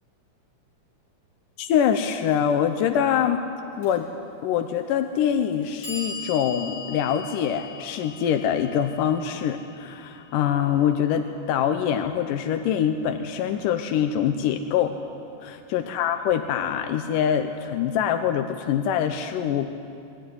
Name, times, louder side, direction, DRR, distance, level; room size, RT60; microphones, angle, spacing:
voice 1, 1.6-3.4 3.8-4.1 4.4-15.0 15.4-19.9, left 9 dB, 90° left, 7 dB, 2.4 m, -24 dB
Clock, 3.8-3.9 4.9-5.0 5.5-11.6, left 3 dB, 30° left, 8.5 m, -41 dB
21.0 x 15.5 x 9.6 m, 2.5 s
omnidirectional pair, 3.7 m